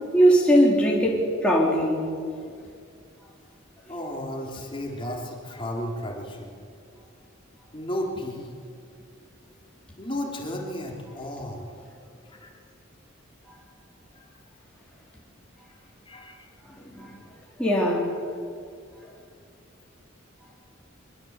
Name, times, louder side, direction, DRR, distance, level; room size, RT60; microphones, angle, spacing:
voice 1, 0.1-2.1 16.8-17.2 17.6-18.1, equal, 5° left, -3 dB, 3.3 m, -20 dB
voice 2, 3.9-6.5 7.7-8.5 10.0-11.7 12.3-12.5 14.1-14.3 16.1-16.4, left 1 dB, 25° left, 0 dB, 3.5 m, -33 dB
25.0 x 22.0 x 8.2 m, 2.3 s
head